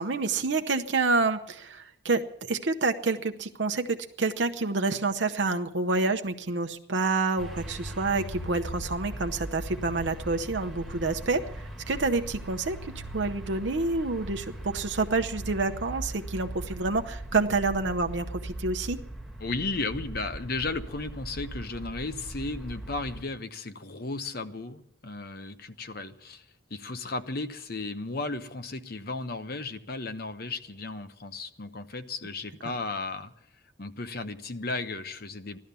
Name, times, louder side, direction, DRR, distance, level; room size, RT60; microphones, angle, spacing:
voice 1, 0.0-2.2 2.5-19.0, right 3 dB, 65° right, 6 dB, 0.8 m, -28 dB
sound 1, 7.4-23.2, right 1 dB, ahead, 1.5 m, -39 dB
voice 2, 19.4-26.4 26.7-33.3 33.8-35.6, left 3 dB, 50° left, 10 dB, 1.0 m, -35 dB
16.5 x 12.5 x 6.9 m, 0.74 s
head